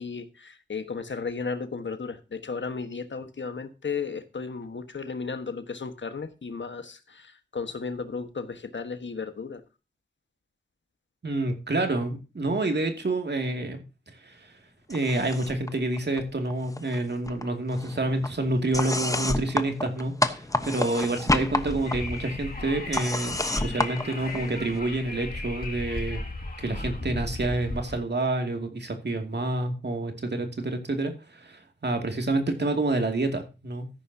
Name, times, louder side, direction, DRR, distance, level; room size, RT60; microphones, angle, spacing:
voice 1, 0.0-9.6, left 5 dB, 80° left, 1.4 m, -34 dB
voice 2, 11.2-13.8 14.1-14.5 14.9-26.2 26.6-33.9, right 2 dB, 65° right, 2.5 m, -28 dB
sound 1, 14.9-15.7 16.0-17.0 17.3-24.8, left 1 dB, 15° left, 1.1 m, -30 dB
Wind, 21.3-28.0, left 2 dB, 50° left, 2.4 m, -36 dB
13.5 x 11.0 x 2.8 m
wide cardioid pair, 80°, 19 cm